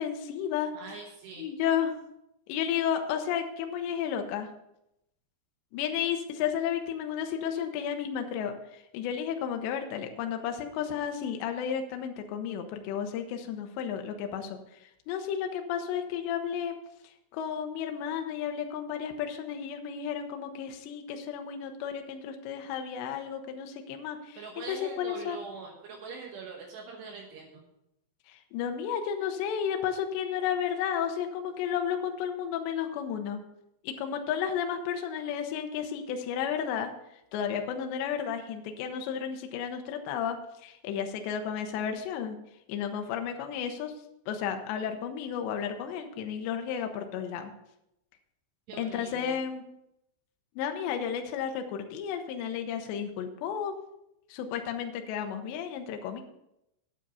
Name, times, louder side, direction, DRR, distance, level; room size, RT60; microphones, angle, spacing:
voice 1, 0.0-0.7 1.4-2.0 2.5-4.5 5.7-16.8 17.3-25.4 28.3-33.4 33.8-36.9 37.3-42.4 42.7-43.9 44.3-47.5 48.8-49.6 50.6-53.7 54.3-56.2, left 8 dB, 75° left, 5 dB, 2.9 m, -32 dB
voice 2, 0.7-1.5 24.4-27.6 48.7-49.4, right 5 dB, 70° right, 0 dB, 3.1 m, -43 dB
9.2 x 9.1 x 5.5 m, 0.84 s
omnidirectional pair, 5.6 m